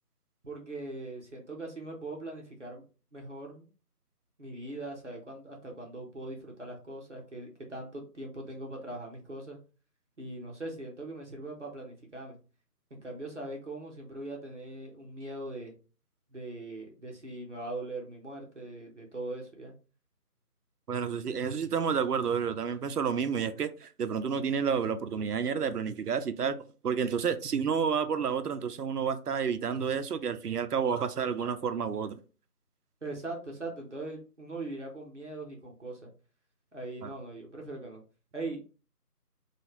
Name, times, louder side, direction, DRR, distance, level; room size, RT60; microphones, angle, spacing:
voice 1, 0.4-2.8 3.1-3.7 4.4-9.6 10.2-12.4 12.9-15.7 16.3-19.7 33.0-36.1 36.7-38.0 38.3-38.6, right 2 dB, 50° right, 0.9 m, -41 dB
voice 2, 20.9-32.2 37.0-37.1, right 6 dB, 75° right, 0.6 m, -30 dB
3.0 x 2.4 x 3.0 m
figure-of-eight pair, 175°, 47 cm